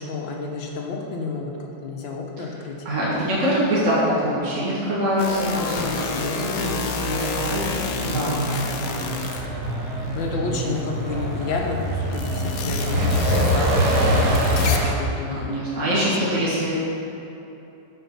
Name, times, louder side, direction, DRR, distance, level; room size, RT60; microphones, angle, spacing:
voice 1, 0.0-1.5 1.8-2.8 5.6-6.7 8.3-8.6 8.9-9.4 10.2-15.6 16.3-16.5, left 4 dB, 85° left, 0 dB, 1.9 m, -31 dB
voice 2, 2.9-7.8 8.1-8.4 15.3-16.7, equal, 40° right, -8 dB, 2.1 m, -24 dB
sound 1, 5.2-10.2 10.5-15.0, left 5 dB, 60° left, 1.0 m, -31 dB
Truck, 7.4-14.9, equal, 60° right, 1.6 m, -24 dB
14.0 x 5.2 x 5.6 m, 3.0 s
omnidirectional pair, 2.1 m